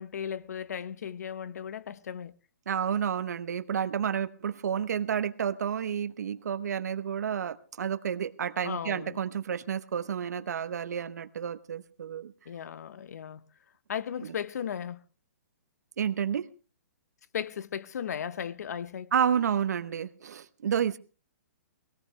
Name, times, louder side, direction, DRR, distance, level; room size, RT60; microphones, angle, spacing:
voice 1, 0.0-2.3 8.6-9.2 12.5-13.4 13.9-15.0 17.3-19.1, left 8 dB, 65° left, 0.9 m, -36 dB
voice 2, 2.7-12.3 14.2-14.3 16.0-16.5 19.1-21.0, right 8 dB, 70° right, 0.9 m, -30 dB
19.0 x 17.5 x 3.2 m
hypercardioid pair, 160°, 9 cm